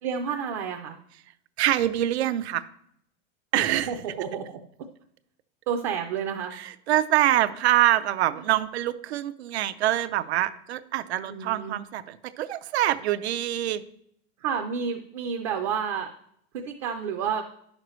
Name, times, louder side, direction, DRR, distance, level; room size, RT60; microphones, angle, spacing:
voice 1, 0.0-1.0 3.5-4.6 5.7-6.5 11.3-11.7 14.4-16.1 16.5-17.4, right 7 dB, 35° right, 3 dB, 0.5 m, -30 dB
voice 2, 1.6-2.7 3.5-4.2 6.5-13.8, right 13 dB, 80° right, 13 dB, 0.6 m, -25 dB
10.0 x 6.5 x 3.1 m, 0.70 s
supercardioid pair, 175°, 32 cm